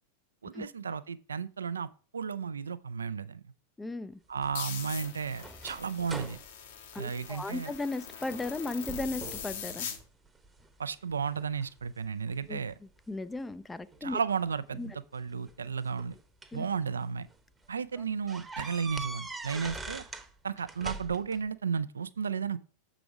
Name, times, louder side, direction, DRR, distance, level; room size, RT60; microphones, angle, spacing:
voice 1, 0.4-3.4 4.3-6.4 7.0-7.7 10.8-12.7 14.0-16.2 16.5-17.3 17.7-20.0 20.4-22.6, right 6 dB, 70° right, 0.4 m, -34 dB
voice 2, 3.8-4.2 6.9-9.9 12.5-14.2 14.8-14.9 16.5-16.6 18.0-18.1, left 2 dB, 10° left, 0.4 m, -36 dB
sound 1, 4.4-7.8 8.2-8.6 8.9-9.6 10.0-10.7 11.3-12.8 13.9-14.0 15.2-16.7 17.2-17.3 17.6-17.7 18.3-20.3 20.6-21.4, right 3 dB, 10° right, 0.8 m, -43 dB
sound 2, 4.5-10.0, left 7 dB, 60° left, 1.2 m, -42 dB
6.8 x 4.9 x 4.8 m
figure-of-eight pair, 90°, 0 cm